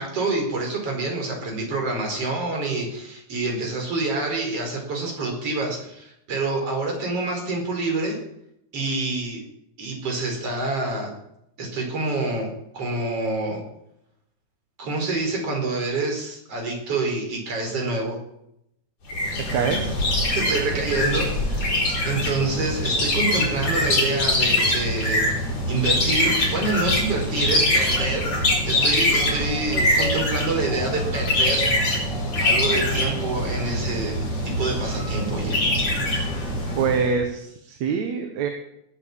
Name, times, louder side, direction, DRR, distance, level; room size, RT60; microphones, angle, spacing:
voice 1, 0.0-8.2 8.7-9.4 9.8-11.1 11.6-13.6 14.8-18.2 20.3-28.3 28.7-31.7 32.4-34.3 34.6-35.6, right 3 dB, 50° right, 1 dB, 5.6 m, -27 dB
sound 1, 19.1-37.1, left 1 dB, 60° left, 5.6 m, -23 dB
voice 2, 19.5-20.0 36.8-38.5, right 6 dB, 70° right, 5 dB, 2.7 m, -24 dB
20.0 x 8.4 x 7.3 m, 0.78 s
omnidirectional pair, 3.4 m